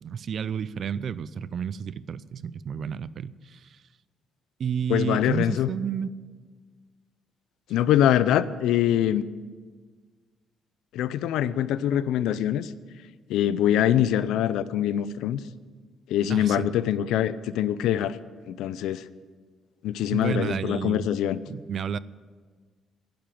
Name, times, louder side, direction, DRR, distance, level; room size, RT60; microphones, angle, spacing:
voice 1, 0.0-3.8 4.6-6.1 16.3-16.7 20.1-21.1 21.5-22.0, right 7 dB, 60° right, 19 dB, 0.4 m, -31 dB
voice 2, 4.9-5.7 7.7-9.3 10.9-12.7 13.3-15.4 16.1-18.2 18.5-19.0 19.8-21.4, left 11 dB, 90° left, 16 dB, 0.5 m, -24 dB
11.5 x 10.5 x 7.7 m, 1.5 s
cardioid pair, 90°, 0 cm